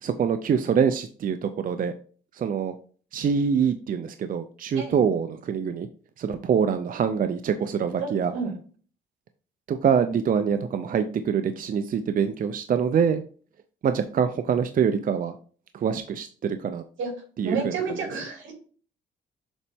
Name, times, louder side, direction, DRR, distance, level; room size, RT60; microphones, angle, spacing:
voice 1, 0.0-1.9 2.3-2.7 3.1-5.9 6.2-8.3 9.7-13.2 13.8-15.3 15.7-16.8 17.4-17.8, right 7 dB, 45° right, 9 dB, 0.5 m, -25 dB
voice 2, 4.7-5.0 8.0-8.5 17.0-17.1 17.4-18.5, right 5 dB, 80° right, 2 dB, 2.4 m, -30 dB
7.1 x 4.0 x 3.5 m, 0.42 s
cardioid pair, 90°, 20 cm